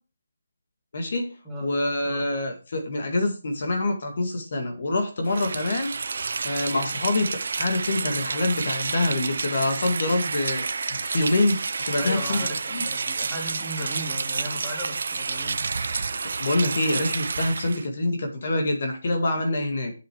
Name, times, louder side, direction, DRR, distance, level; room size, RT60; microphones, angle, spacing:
voice 1, 0.9-1.3 1.6-5.9 6.4-10.7 11.1-11.6 11.9-12.4 12.7-12.8 16.1-19.9, left 2 dB, 50° left, 4 dB, 2.1 m, -25 dB
Rain, 5.3-17.9, right 4 dB, 60° right, 0.6 m, -30 dB
voice 2, 11.9-15.6, equal, ahead, -8 dB, 2.9 m, -35 dB
7.8 x 6.8 x 4.7 m, 0.33 s
hypercardioid pair, 165°, 0 cm